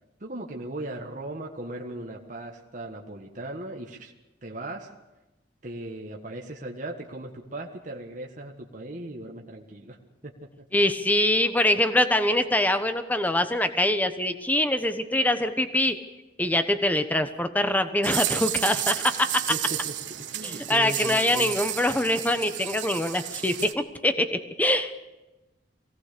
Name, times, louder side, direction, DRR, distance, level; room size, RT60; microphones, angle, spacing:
voice 1, 0.2-4.1 4.4-4.9 5.6-10.0 10.2-10.6 19.5-19.9 20.3-21.5, right 1 dB, 45° right, 1 dB, 1.6 m, -38 dB
voice 2, 10.7-16.0 16.4-19.4 20.4-24.9, left 1 dB, 10° left, 9 dB, 1.1 m, -24 dB
sound 1, 18.0-23.7, right 12 dB, 85° right, 1.3 m, -32 dB
23.5 x 17.5 x 6.8 m, 1.1 s
head